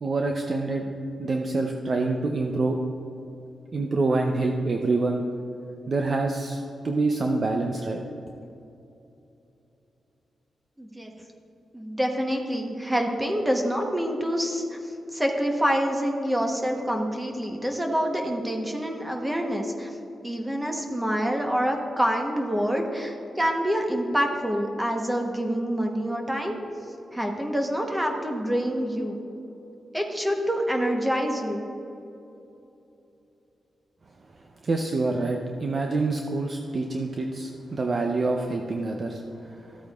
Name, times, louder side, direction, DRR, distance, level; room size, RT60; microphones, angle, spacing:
voice 1, 0.0-0.9 1.2-2.8 3.7-5.2 5.9-8.0 34.6-39.2 39.5-39.7, right 3 dB, 45° right, 2 dB, 0.5 m, -26 dB
voice 2, 10.8-11.1 11.7-14.8 15.1-19.9 20.2-26.6 27.1-29.2 29.9-31.7, equal, 10° right, 2 dB, 0.9 m, -26 dB
13.5 x 8.5 x 2.3 m, 2.9 s
cardioid pair, 110°, 0 cm